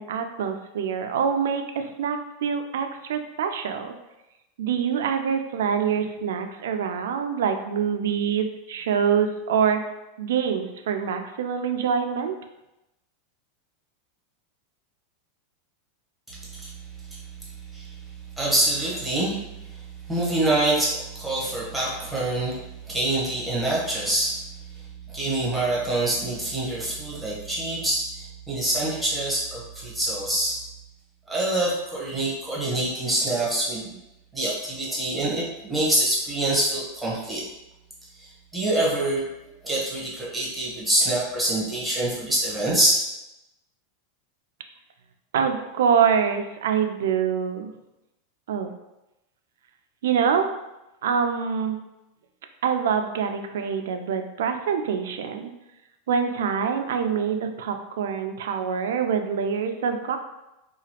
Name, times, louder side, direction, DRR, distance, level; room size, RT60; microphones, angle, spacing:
voice 1, 0.0-3.9 4.6-9.8 10.2-12.3 45.3-47.7 48.5-48.7 50.0-50.5 51.0-51.8 52.6-55.5 56.1-60.2, right 7 dB, 85° right, 6 dB, 0.3 m, -25 dB
voice 2, 18.4-19.4 19.7-19.8 20.1-22.6 22.9-24.3 25.1-30.6 31.3-33.9 34.3-37.4 38.2-39.2 39.6-43.0, right 1 dB, ahead, -7 dB, 0.9 m, -25 dB
2.9 x 2.4 x 2.8 m, 0.93 s
supercardioid pair, 150°, 0 cm